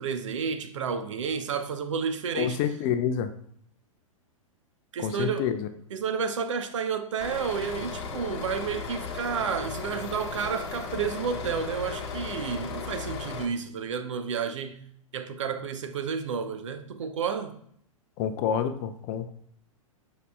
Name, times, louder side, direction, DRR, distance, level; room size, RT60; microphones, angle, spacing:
voice 1, 0.0-2.6 4.9-5.5 5.9-17.6, right 6 dB, 60° right, 0.6 m, -31 dB
voice 2, 2.3-3.3 5.0-5.7 18.2-19.3, left 8 dB, 30° left, 0.5 m, -28 dB
sound 1, 7.2-13.5, left 5 dB, 50° left, 1.0 m, -36 dB
8.2 x 5.6 x 2.3 m
figure-of-eight pair, 105°, 18 cm